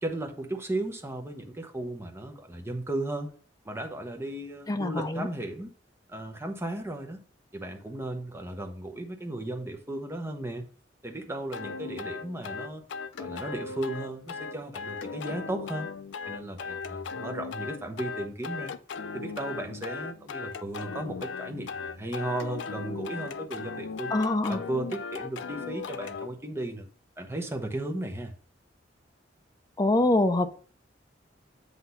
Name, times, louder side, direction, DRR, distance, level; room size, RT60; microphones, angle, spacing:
voice 1, 0.0-3.3 3.6-5.7 6.1-7.2 7.5-10.6 11.0-12.8 13.2-15.9 16.3-18.7 19.1-24.1 24.5-26.9 27.2-28.3, right 1 dB, 15° right, 4 dB, 0.9 m, -35 dB
voice 2, 4.7-5.3 24.1-24.6 29.8-30.5, left 2 dB, 20° left, 8 dB, 0.5 m, -24 dB
sound 1, 11.5-26.3, left 5 dB, 75° left, 0.4 m, -37 dB
7.9 x 2.7 x 5.5 m, 0.42 s
head